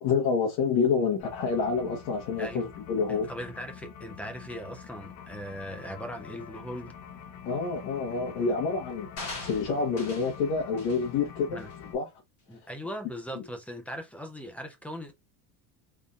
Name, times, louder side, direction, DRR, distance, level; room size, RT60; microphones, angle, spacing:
voice 1, 0.0-3.3 7.4-9.1 9.4-11.6 11.9-12.1 13.3-13.4, left 5 dB, 65° left, 1.3 m, -28 dB
sound 1, 1.2-11.9, left 7 dB, 85° left, 1.0 m, -46 dB
voice 2, 2.4-2.7 3.1-7.0 11.5-11.7 12.5-15.1, equal, 5° left, 0.3 m, -39 dB
sound 2, 9.2-10.4 10.8-11.0 11.6-11.7, left 3 dB, 35° left, 2.2 m, -41 dB
4.0 x 3.6 x 2.4 m
cardioid pair, 170°, 42 cm